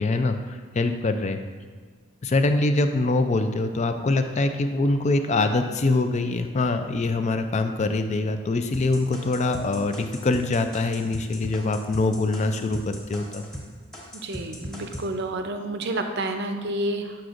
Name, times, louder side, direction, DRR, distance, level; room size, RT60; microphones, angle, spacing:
voice 1, 0.0-1.4 2.2-13.4, left 2 dB, 35° left, 8 dB, 0.4 m, -24 dB
sound 1, 8.7-13.7 13.9-15.1, equal, 5° left, 1.2 m, -37 dB
voice 2, 14.2-17.1, right 1 dB, 50° right, 6 dB, 0.5 m, -29 dB
7.7 x 5.8 x 2.5 m, 1.5 s
head